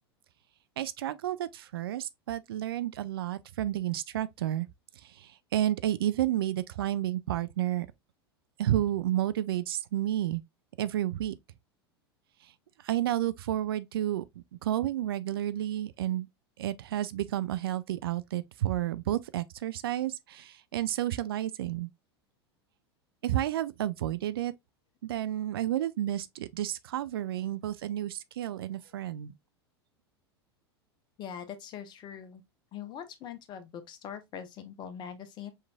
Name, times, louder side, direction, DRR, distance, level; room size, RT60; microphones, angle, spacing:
voice 1, 0.8-4.7 5.0-7.9 8.6-10.4 10.8-11.3 12.4-12.5 12.8-14.2 14.6-16.3 16.6-21.9 23.2-24.5 25.0-29.3, right 12 dB, 60° right, 0.4 m, -31 dB
voice 2, 31.2-32.4 32.7-35.5, left 8 dB, 35° left, 0.9 m, -42 dB
5.5 x 3.1 x 2.2 m
figure-of-eight pair, 90°, 14 cm